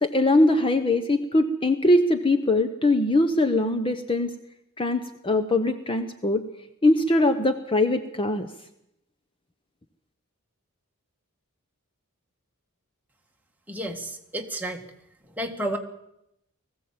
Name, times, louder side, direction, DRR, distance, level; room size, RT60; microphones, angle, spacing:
voice 1, 0.0-4.3 4.8-6.4 6.8-8.5, left 2 dB, 25° left, 9 dB, 0.9 m, -22 dB
voice 2, 13.7-14.8 15.4-15.8, right 1 dB, 10° right, 2 dB, 1.8 m, -31 dB
20.0 x 15.5 x 8.6 m, 0.80 s
head